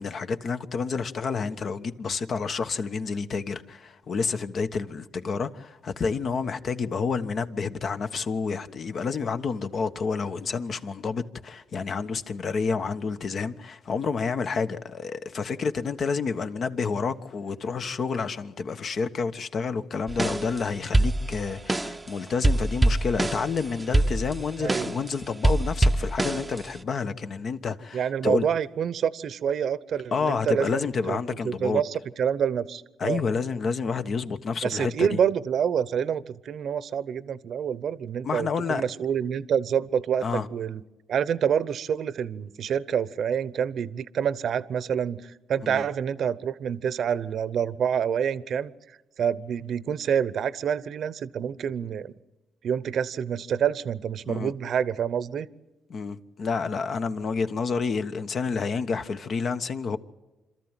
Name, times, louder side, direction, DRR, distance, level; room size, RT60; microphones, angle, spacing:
voice 1, 0.0-28.5 30.1-31.8 33.0-35.2 38.2-38.8 40.2-40.5 45.6-45.9 54.2-54.5 55.9-60.0, left 5 dB, 50° left, 1.2 m, -29 dB
sound 1, 20.1-20.6 20.9-22.1 22.4-25.1 25.4-26.8, right 1 dB, 15° right, 0.7 m, -24 dB
voice 2, 27.9-31.2 31.4-33.2 34.6-40.8 41.1-48.7 49.2-52.1 52.6-55.5, right 8 dB, 65° right, 0.9 m, -27 dB
26.5 x 13.5 x 9.0 m
cardioid pair, 90°, 0 cm